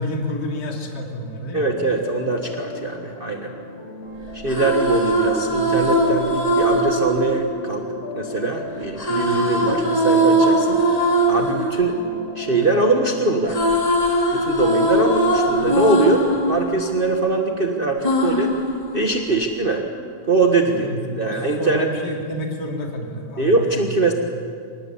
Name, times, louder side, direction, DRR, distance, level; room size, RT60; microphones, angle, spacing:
voice 1, 0.0-1.7 20.7-23.8, left 1 dB, 35° left, 1 dB, 3.1 m, -29 dB
voice 2, 1.5-3.5 4.3-7.9 8.1-10.8 11.3-12.0 12.3-13.6 14.3-18.5 18.9-19.8 20.3-20.9 21.2-21.9 23.4-24.1, right 3 dB, 45° right, 2 dB, 0.6 m, -22 dB
sound 1, 1.6-13.7, left 3 dB, 75° left, 6.6 m, -37 dB
sound 2, 4.3-8.4 9.0-13.0 13.3-17.5 18.0-19.5, right 1 dB, 10° left, 2.9 m, -21 dB
26.0 x 19.0 x 8.4 m, 2.3 s
omnidirectional pair, 3.3 m